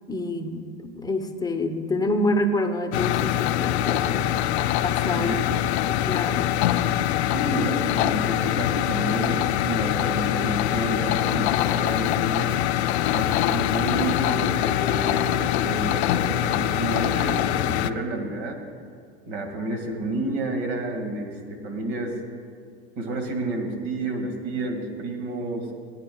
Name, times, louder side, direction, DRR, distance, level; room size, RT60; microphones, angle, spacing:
voice 1, 0.1-0.7 1.0-4.3 4.8-5.3 5.9-6.6, left 1 dB, 10° left, 5 dB, 0.9 m, -27 dB
sound 1, 2.9-17.9, left 12 dB, 75° left, 0.5 m, -24 dB
voice 2, 7.3-12.6 13.1-18.6 19.3-22.1 23.0-25.7, right 1 dB, 65° right, 4 dB, 2.1 m, -30 dB
18.5 x 10.0 x 2.3 m, 2.1 s
hypercardioid pair, 90°, 33 cm